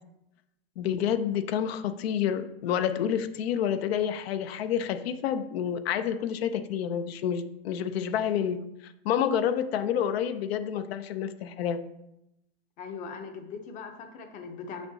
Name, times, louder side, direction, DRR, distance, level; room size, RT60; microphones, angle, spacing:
voice 1, 0.8-11.8, left 9 dB, 75° left, 12 dB, 0.6 m, -29 dB
voice 2, 12.8-14.9, left 5 dB, 25° left, 6 dB, 0.6 m, -40 dB
6.5 x 6.1 x 2.7 m, 0.85 s
supercardioid pair, 150°, 31 cm